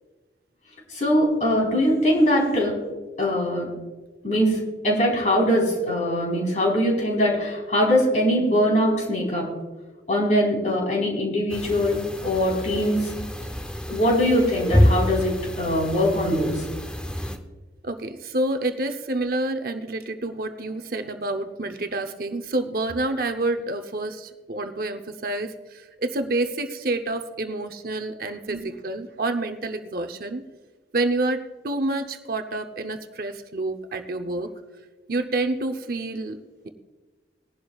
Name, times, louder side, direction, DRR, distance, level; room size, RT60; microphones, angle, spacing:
voice 1, 0.9-2.8 3.2-3.7 4.2-9.5 10.1-13.1 13.9-16.7 28.5-28.6, equal, 40° left, -2 dB, 4.2 m, -22 dB
sound 1, 11.5-17.4, equal, 5° left, 0.7 m, -27 dB
voice 2, 13.9-14.2 17.8-30.4 30.9-34.5 35.1-36.7, right 2 dB, 50° right, 7 dB, 0.7 m, -28 dB
20.0 x 11.5 x 2.4 m, 1.3 s
head